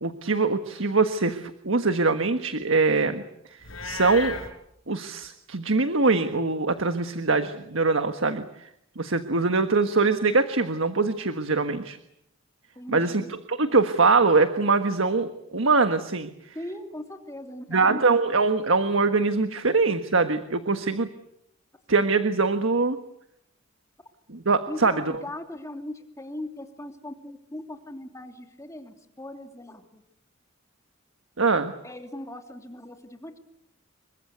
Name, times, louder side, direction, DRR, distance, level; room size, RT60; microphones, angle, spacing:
voice 1, 0.0-3.2 3.8-4.3 4.9-8.7 9.0-12.0 12.9-13.2 13.5-16.3 17.7-21.1 21.9-23.0 24.3-24.9 31.4-31.7, right 3 dB, 70° right, 8 dB, 1.5 m, -23 dB
Livestock farm animals working animals, 3.6-4.5, left 5 dB, 85° left, 5.2 m, -34 dB
voice 2, 12.7-13.3 16.5-18.2 24.7-30.0 31.8-33.4, left 1 dB, 15° left, 5 dB, 3.0 m, -39 dB
28.0 x 23.5 x 8.2 m, 0.78 s
head